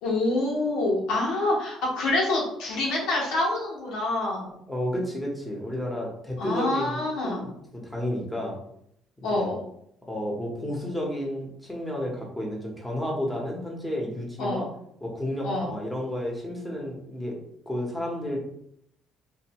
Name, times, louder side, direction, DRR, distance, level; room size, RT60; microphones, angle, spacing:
voice 1, 0.0-4.6 6.4-7.4 9.2-9.6 14.4-14.7 15.4-15.7, left 2 dB, 90° left, -4 dB, 1.2 m, -26 dB
voice 2, 4.7-8.6 9.2-9.5 10.1-14.7 15.0-17.4 17.7-18.4, left 1 dB, 5° left, -2 dB, 1.0 m, -31 dB
2.6 x 2.6 x 3.0 m, 0.73 s
cardioid pair, 105°, 0 cm